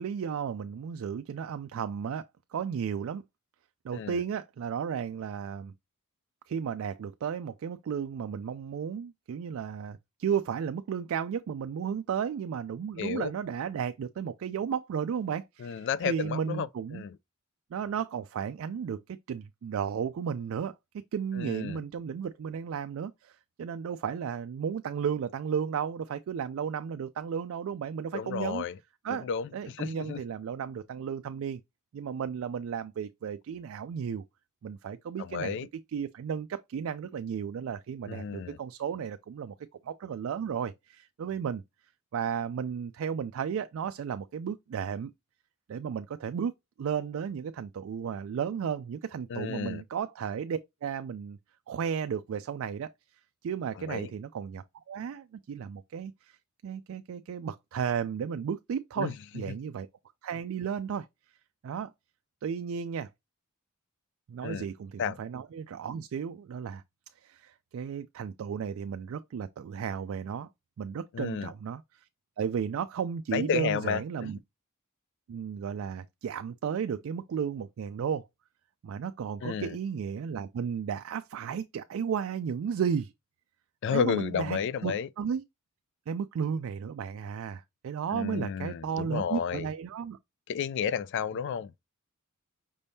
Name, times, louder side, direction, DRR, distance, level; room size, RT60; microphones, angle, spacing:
voice 1, 0.0-2.3 2.5-3.2 3.8-5.7 6.5-17.0 17.7-20.7 21.1-28.6 29.0-31.6 31.9-34.2 34.6-35.6 35.9-39.5 39.8-41.6 42.1-45.1 45.7-46.5 46.8-51.4 51.7-52.9 53.4-56.4 56.6-59.9 60.2-61.1 61.6-61.9 62.4-63.1 64.3-66.8 67.2-70.5 70.8-71.8 72.4-74.4 75.3-78.3 78.8-83.1 83.9-85.4 86.1-90.2, right 7 dB, 65° right, 0.3 m, -34 dB
voice 2, 13.0-13.3 15.6-16.7 16.9-17.2 21.4-21.8 28.1-28.7 29.1-30.2 35.2-35.7 38.1-38.6 49.3-49.8 53.8-54.1 59.0-59.1 64.4-64.7 65.0-65.2 71.1-71.5 73.3-74.3 79.4-79.8 83.8-85.1 88.1-89.7 90.5-91.7, left 7 dB, 55° left, 0.3 m, -32 dB
5.3 x 3.4 x 2.7 m
head